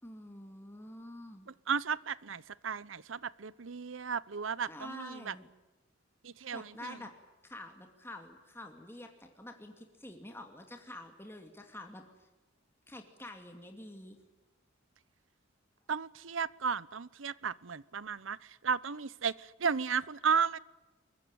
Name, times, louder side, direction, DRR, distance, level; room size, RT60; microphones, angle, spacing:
voice 1, 0.0-1.5 4.7-5.5 6.5-7.1 7.4-12.3 12.9-14.2, left 1 dB, 10° left, 4 dB, 2.5 m, -47 dB
voice 2, 1.7-5.3 6.2-7.0 15.9-20.6, right 6 dB, 85° right, 20 dB, 0.9 m, -34 dB
24.0 x 22.0 x 9.0 m, 1.1 s
head